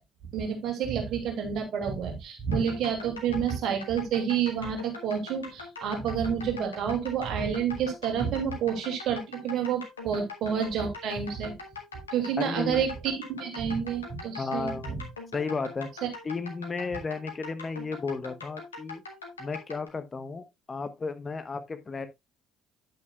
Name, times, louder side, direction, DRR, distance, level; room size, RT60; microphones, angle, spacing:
voice 1, 0.3-11.6 12.1-15.0, right 7 dB, 55° right, 2.6 m, -29 dB
sound 1, 2.5-19.9, left 4 dB, 85° left, 1.7 m, -42 dB
voice 2, 12.4-12.9 13.5-13.6 14.4-15.9 16.2-19.0 19.4-22.1, left 4 dB, 30° left, 1.0 m, -34 dB
9.5 x 8.5 x 2.4 m
figure-of-eight pair, 50°, 0 cm